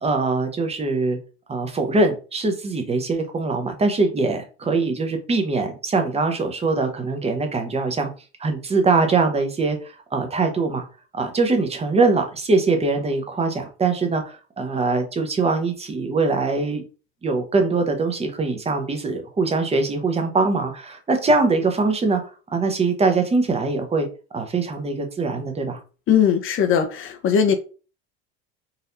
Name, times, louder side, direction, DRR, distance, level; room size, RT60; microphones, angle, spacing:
voice 1, 0.0-1.2 1.5-8.1 8.4-10.8 11.1-16.8 17.2-22.2 22.5-24.1 24.3-25.8, right 3 dB, 20° right, 0.8 m, -22 dB
voice 2, 26.1-27.6, left 8 dB, 40° left, 0.7 m, -19 dB
4.1 x 2.7 x 2.6 m
hypercardioid pair, 90°, 32 cm